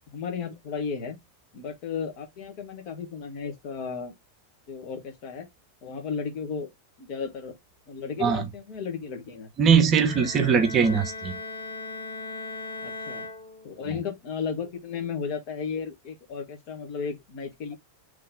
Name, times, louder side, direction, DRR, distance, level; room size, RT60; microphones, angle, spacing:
voice 1, 0.1-1.2 1.5-4.1 4.7-5.5 5.8-6.7 7.0-7.5 7.9-9.5 12.8-13.3 13.6-17.8, left 6 dB, 40° left, 1.4 m, -34 dB
voice 2, 9.6-11.4, right 6 dB, 30° right, 0.7 m, -21 dB
Bowed string instrument, 10.0-14.0, left 3 dB, 75° left, 1.4 m, -38 dB
3.9 x 3.2 x 3.9 m
figure-of-eight pair, 90°, 0 cm